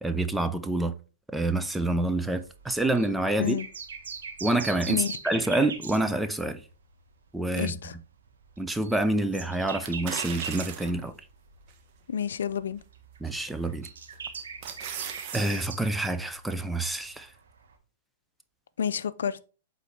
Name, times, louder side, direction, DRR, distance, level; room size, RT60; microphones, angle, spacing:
voice 1, 0.0-0.9 1.3-3.6 4.4-6.6 7.3-7.8 8.6-11.2 13.2-13.9 15.3-17.3, right 2 dB, 5° right, 0.5 m, -27 dB
sound 1, 2.4-6.7 7.0-7.3 7.8-12.1 12.3-17.7, right 5 dB, 80° right, 1.5 m, -42 dB
voice 2, 7.6-7.9 12.1-12.8 18.8-19.5, left 7 dB, 80° left, 0.5 m, -29 dB
sound 2, 9.8-11.1 11.7-11.8 13.4-13.7 14.1-15.7 16.0-16.1, right 9 dB, 50° right, 1.1 m, -38 dB
8.2 x 3.8 x 3.3 m
hypercardioid pair, 120°, 0 cm